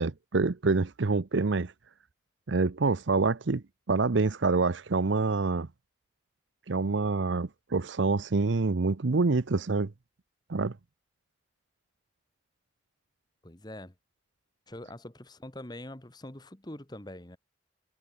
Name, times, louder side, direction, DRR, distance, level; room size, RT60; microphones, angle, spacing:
voice 1, 0.0-1.7 2.5-5.7 6.7-9.9 10.5-10.7, right 3 dB, 70° right, 0.7 m, -26 dB
voice 2, 13.4-13.9 14.7-17.4, left 1 dB, 20° left, 1.4 m, -44 dB
head